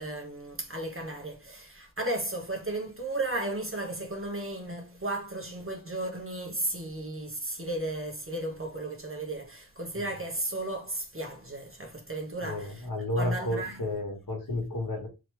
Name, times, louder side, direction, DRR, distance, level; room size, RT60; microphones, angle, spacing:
voice 1, 0.0-12.9 13.2-13.8, right 2 dB, 35° right, 1.2 m, -34 dB
voice 2, 12.4-15.1, left 1 dB, 60° left, 1.5 m, -32 dB
3.7 x 3.0 x 3.3 m
wide cardioid pair, 55°, 38 cm